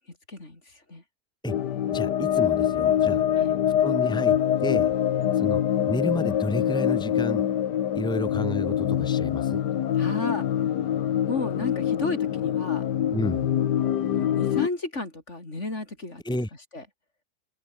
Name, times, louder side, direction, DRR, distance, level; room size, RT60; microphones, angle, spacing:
voice 1, 0.3-1.0 3.4-3.5 5.2-5.4 10.0-10.5 11.3-12.8 14.1-16.4 16.7-16.8, left 2 dB, 45° left, 4.7 m, -33 dB
sound 1, 1.5-14.7, left 10 dB, 85° left, 1.7 m, -24 dB
voice 2, 1.9-3.2 3.8-4.9 5.3-5.6 5.9-7.4 7.9-9.6 13.1-13.5 16.2-16.5, equal, 5° left, 2.4 m, -31 dB
omnidirectional pair, 1.8 m